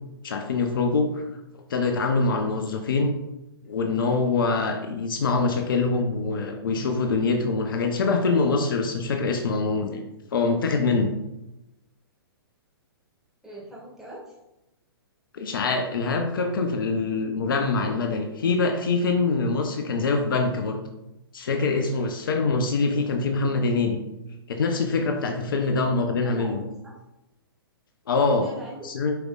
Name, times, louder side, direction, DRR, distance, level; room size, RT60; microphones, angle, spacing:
voice 1, 0.2-1.3 1.7-3.1 3.7-10.0 10.3-11.1 15.3-20.8 21.3-24.0 24.5-26.6 28.1-28.5 28.8-29.2, left 3 dB, 60° left, 4 dB, 0.8 m, -24 dB
voice 2, 13.4-14.3 25.7-25.9 26.2-27.0 28.2-28.9, right 1 dB, 5° right, -6 dB, 2.3 m, -41 dB
7.7 x 5.0 x 2.4 m, 0.94 s
figure-of-eight pair, 115°, 13 cm